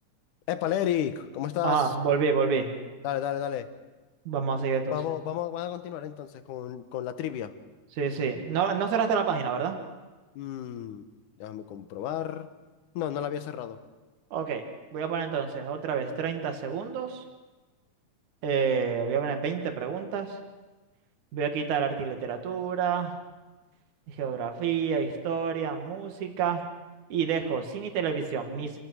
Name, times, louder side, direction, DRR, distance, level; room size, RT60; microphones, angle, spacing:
voice 1, 0.5-1.9 3.0-3.7 4.9-7.5 10.4-11.0 11.4-12.5 13.0-13.8, left 10 dB, 75° left, 10 dB, 2.5 m, -32 dB
voice 2, 1.6-2.7 4.3-5.0 7.9-9.8 14.3-14.6 14.9-17.2 18.4-20.4 21.3-23.2 24.1-26.6 27.1-28.8, right 6 dB, 70° right, 5 dB, 3.1 m, -28 dB
26.5 x 17.5 x 6.2 m, 1.2 s
omnidirectional pair, 3.7 m